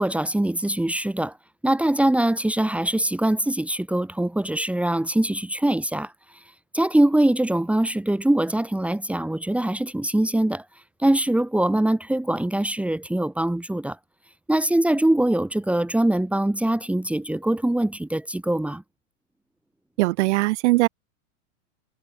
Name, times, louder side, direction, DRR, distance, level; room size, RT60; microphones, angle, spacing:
voice 1, 0.0-1.4 1.6-6.1 6.7-10.6 11.0-14.0 14.5-18.8, right 1 dB, 5° right, 3.4 m, -23 dB
voice 2, 20.0-20.9, right 20 dB, 60° right, 7.3 m, -20 dB
hypercardioid pair, 130°, 39 cm